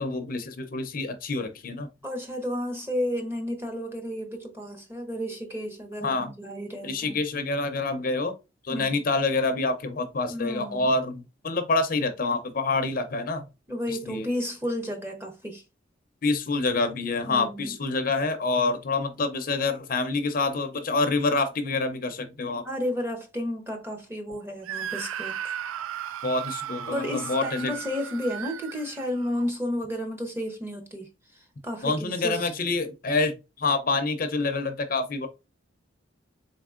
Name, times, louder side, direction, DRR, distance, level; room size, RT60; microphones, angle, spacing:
voice 1, 0.0-1.9 6.0-6.3 6.8-8.3 8.6-13.4 13.9-14.3 16.2-22.6 26.2-27.7 31.8-33.3 33.6-35.3, left 3 dB, 45° left, 0.5 m, -27 dB
voice 2, 2.0-7.2 8.7-9.0 10.3-10.9 13.7-15.6 17.3-17.8 22.6-25.5 26.9-32.5, left 1 dB, 10° right, 0.7 m, -32 dB
Screaming, 24.6-29.5, right 10 dB, 85° right, 0.3 m, -36 dB
3.9 x 3.6 x 2.4 m
head